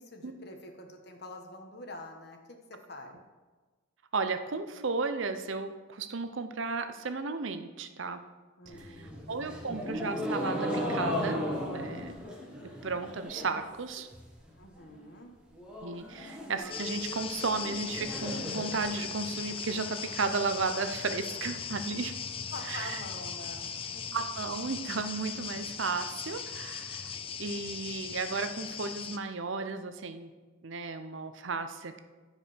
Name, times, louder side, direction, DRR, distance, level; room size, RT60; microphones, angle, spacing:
voice 1, 0.0-3.2 8.6-9.7 14.6-15.3 21.6-21.8 22.5-24.2, left 2 dB, 55° left, 3 dB, 1.3 m, -46 dB
voice 2, 4.1-8.2 8.8-11.4 11.7-12.1 12.8-14.1 15.8-22.1 22.7-23.0 24.1-30.3 30.6-32.0, right 4 dB, 70° right, 9 dB, 0.7 m, -34 dB
sound 1, 8.6-13.7 14.0-14.5 14.8-14.9 15.2-15.3 15.6-19.6, equal, 5° right, 1.4 m, -36 dB
sound 2, 16.7-29.2, left 7 dB, 25° left, 0.4 m, -39 dB
14.0 x 4.9 x 5.1 m, 1.3 s
head